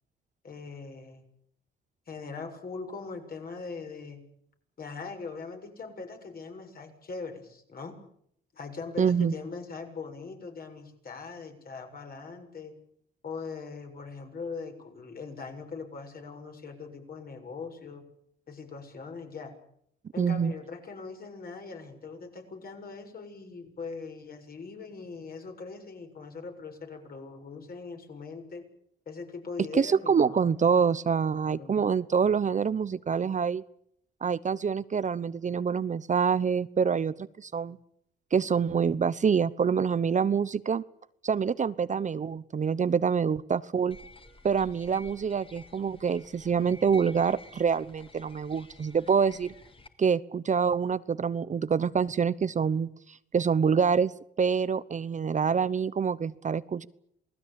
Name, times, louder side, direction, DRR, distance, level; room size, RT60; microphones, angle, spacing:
voice 1, 0.4-1.2 2.1-4.2 4.8-7.9 8.5-12.7 13.2-18.0 18.5-19.5 20.1-28.6 29.1-30.5 31.3-31.8, left 4 dB, 50° left, 4 dB, 7.1 m, -41 dB
voice 2, 9.0-9.3 20.2-20.5 29.7-33.6 34.2-37.8 38.3-40.8 41.2-44.0 44.4-49.5 50.0-54.1 54.4-56.9, right 6 dB, 40° right, 16 dB, 1.0 m, -26 dB
sound 1, 43.9-49.9, left 2 dB, 25° left, 3.5 m, -51 dB
28.0 x 19.5 x 8.9 m, 0.70 s
cardioid pair, 90°, 20 cm